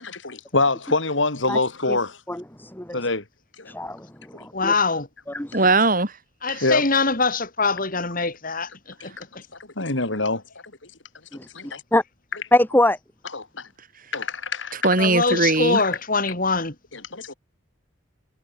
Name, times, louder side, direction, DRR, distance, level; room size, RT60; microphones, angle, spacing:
voice 1, 0.0-2.2 2.9-3.2 3.6-3.7 4.3-4.5 6.6-6.8 9.0-9.1 9.8-10.4 11.5-11.7 13.3-13.7 14.1-14.9 16.9-17.3, left 3 dB, 65° left, 3.4 m, -25 dB
voice 2, 2.3-3.0 3.7-4.7 5.3-5.6 11.3-11.5 11.9-12.0 12.5-13.0, left 1 dB, 10° left, 1.9 m, -23 dB
voice 3, 4.5-5.1 6.4-8.7 9.0-9.4 15.0-16.7, left 4 dB, 45° left, 4.9 m, -23 dB
voice 4, 5.5-6.1 6.5-6.6 14.7-15.8, right 3 dB, 45° right, 6.0 m, -20 dB
head